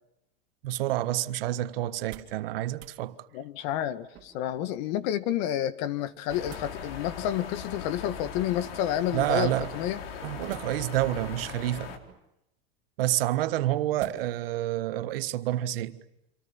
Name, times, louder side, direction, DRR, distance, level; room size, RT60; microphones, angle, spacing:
voice 1, 0.6-3.1 9.1-9.7 10.2-11.9 13.0-16.0, right 14 dB, 75° right, 1.6 m, -28 dB
sound 1, 1.9-2.4 2.7-3.0 4.1-4.6 6.0-6.8 8.0-8.4 10.5-11.1 11.8-12.3 14.0-14.5 14.9-15.0, right 13 dB, 40° right, 3.3 m, -49 dB
voice 2, 3.3-10.0, left 11 dB, 50° left, 1.6 m, -30 dB
sound 2, 6.3-12.0, left 6 dB, 80° left, 4.0 m, -40 dB
28.0 x 26.5 x 7.1 m
supercardioid pair, 165°, 29 cm